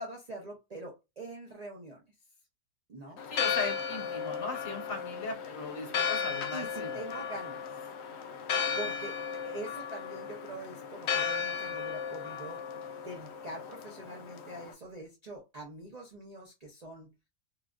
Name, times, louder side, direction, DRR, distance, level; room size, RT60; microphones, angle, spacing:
voice 1, 0.0-2.0 2.9-3.2 6.5-7.6 8.7-12.6 13.0-17.1, right 2 dB, 70° right, 0.3 m, -44 dB
Church bell, 3.2-14.7, left 6 dB, 80° left, 0.6 m, -35 dB
voice 2, 3.3-7.0, left 3 dB, 55° left, 1.3 m, -38 dB
3.1 x 2.4 x 2.2 m
omnidirectional pair, 1.7 m